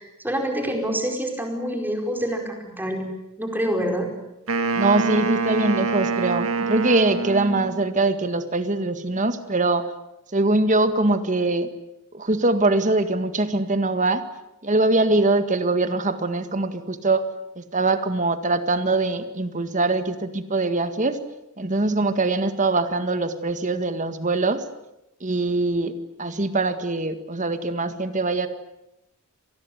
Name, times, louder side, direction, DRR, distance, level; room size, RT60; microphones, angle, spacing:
voice 1, 0.0-3.1 3.4-4.1, equal, 10° right, 3 dB, 4.8 m, -26 dB
Wind instrument woodwind instrument, 4.5-8.0, right 4 dB, 75° right, 2.1 m, -25 dB
voice 2, 4.7-9.9 10.3-11.7 12.1-14.2 14.6-17.2 17.6-21.2 21.6-24.6 25.2-25.9 26.2-28.5, right 2 dB, 35° right, 10 dB, 1.8 m, -22 dB
26.0 x 20.0 x 9.4 m, 0.88 s
head